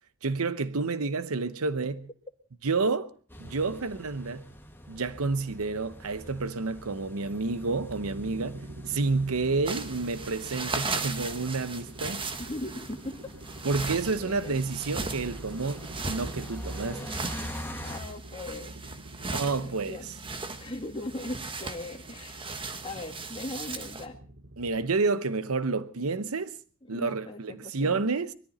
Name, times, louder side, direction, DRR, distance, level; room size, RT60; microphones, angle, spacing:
voice 1, 0.2-2.1 2.6-3.1 3.4-4.5 4.9-8.6 8.9-12.2 13.6-17.1 19.3-20.1 24.6-26.5 26.9-28.3, right 3 dB, 90° right, 0.9 m, -29 dB
sound 1, 3.3-18.0, equal, 10° left, 1.8 m, -45 dB
Chinook High, 6.9-24.9, right 2 dB, 55° right, 1.5 m, -46 dB
sound 2, 9.7-24.1, right 3 dB, 25° right, 1.3 m, -37 dB
voice 2, 12.4-13.2 13.8-13.9 14.2-14.6 17.8-18.7 19.6-20.1 20.6-22.5 22.8-24.2 26.8-28.0, left 1 dB, 25° left, 2.1 m, -39 dB
21.5 x 14.0 x 4.2 m
head